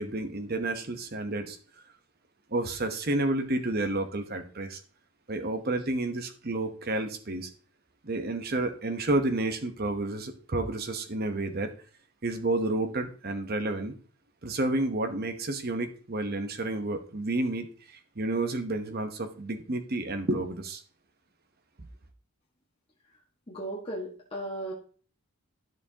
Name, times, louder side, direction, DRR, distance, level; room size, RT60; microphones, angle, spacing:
voice 1, 0.0-1.6 2.5-4.8 5.3-7.5 8.0-11.7 12.2-13.9 14.4-20.8, right 2 dB, 45° right, 0.9 m, -30 dB
voice 2, 23.5-24.7, right 1 dB, 25° left, 1.5 m, -36 dB
11.0 x 6.9 x 2.8 m
head